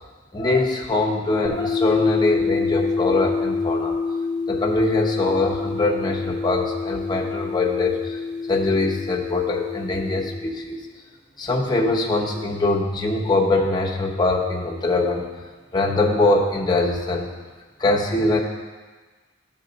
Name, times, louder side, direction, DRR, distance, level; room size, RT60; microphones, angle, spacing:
voice 1, 0.3-4.0 4.5-8.2 8.5-10.8 11.4-15.3 15.7-17.3 17.8-18.4, left 2 dB, 20° left, -1 dB, 0.8 m, -22 dB
sound 1, 1.4-10.3, left 4 dB, 20° right, 1.0 m, -27 dB
12.5 x 4.3 x 4.0 m, 1.4 s
head